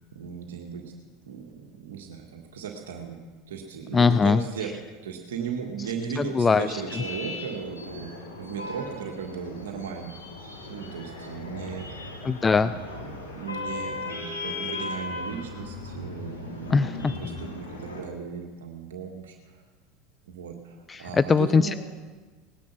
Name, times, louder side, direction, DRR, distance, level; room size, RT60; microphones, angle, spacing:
voice 1, 0.1-0.9 1.3-3.2 3.5-10.2 10.7-12.0 12.6-19.6 20.3-21.7, right 6 dB, 75° right, 2 dB, 1.8 m, -37 dB
voice 2, 3.9-4.4 6.2-6.7 12.2-12.7 16.7-17.1 20.9-21.7, left 5 dB, 20° left, 13 dB, 0.5 m, -21 dB
sound 1, 6.7-18.0, left 2 dB, 90° left, 3.8 m, -37 dB
19.0 x 10.5 x 6.0 m, 1.4 s
hypercardioid pair, 80°, 0 cm